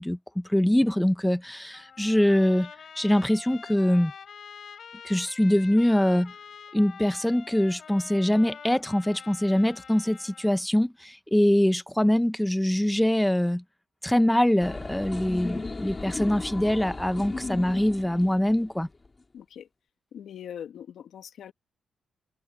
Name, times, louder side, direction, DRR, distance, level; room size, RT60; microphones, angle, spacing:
voice 1, 0.0-2.7 2.9-4.1 5.0-6.3 6.7-13.6 14.0-18.9, left 1 dB, 5° left, 0.9 m, -23 dB
Trumpet, 1.7-10.6, left 7 dB, 60° left, 3.8 m, -46 dB
sound 1, 14.6-19.1, left 3 dB, 30° left, 4.9 m, -36 dB
voice 2, 19.3-19.7 20.1-21.5, left 9 dB, 80° left, 2.4 m, -41 dB
cardioid pair, 75°, 0 cm